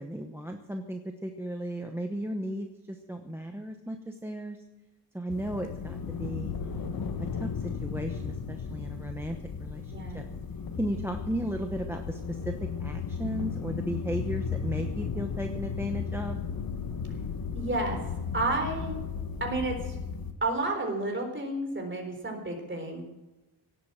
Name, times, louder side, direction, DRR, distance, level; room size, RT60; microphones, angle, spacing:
voice 1, 0.0-4.6 5.1-6.9 7.3-10.2 10.8-12.5 12.8-16.4, right 1 dB, 5° right, 5 dB, 0.9 m, -35 dB
sound 1, 5.3-20.3, left 6 dB, 55° left, 1.3 m, -35 dB
voice 2, 17.5-18.0 18.3-18.9 19.4-20.0 20.4-23.0, right 2 dB, 30° right, 3 dB, 3.8 m, -31 dB
17.5 x 8.3 x 7.5 m, 1.0 s
wide cardioid pair, 155°, 41 cm